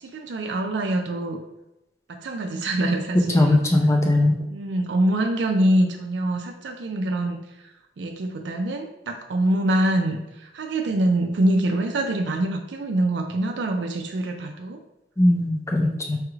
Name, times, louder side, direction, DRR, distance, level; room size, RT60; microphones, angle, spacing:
voice 1, 0.1-1.4 2.1-3.6 4.5-7.4 8.0-10.2 10.5-14.8, right 1 dB, 85° right, 4 dB, 0.4 m, -24 dB
voice 2, 3.3-4.3 15.2-16.2, left 1 dB, 15° left, 2 dB, 0.4 m, -19 dB
4.8 x 2.3 x 3.1 m, 0.94 s
head